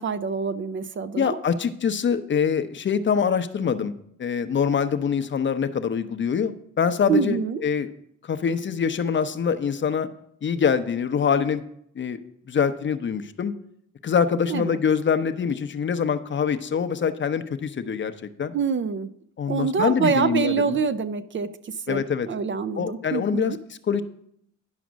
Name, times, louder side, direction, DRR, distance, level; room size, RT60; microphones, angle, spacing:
voice 1, 0.0-1.4 7.1-7.6 14.5-14.8 18.5-19.1 19.5-23.6, right 5 dB, 40° right, 12 dB, 0.5 m, -26 dB
voice 2, 1.2-7.9 8.2-10.1 10.4-11.6 12.0-12.2 12.5-13.5 14.0-18.5 19.4-20.6 21.9-22.3 22.8-24.0, left 7 dB, 40° left, 10 dB, 0.7 m, -24 dB
10.5 x 5.0 x 6.2 m, 0.71 s
cardioid pair, 90°, 30 cm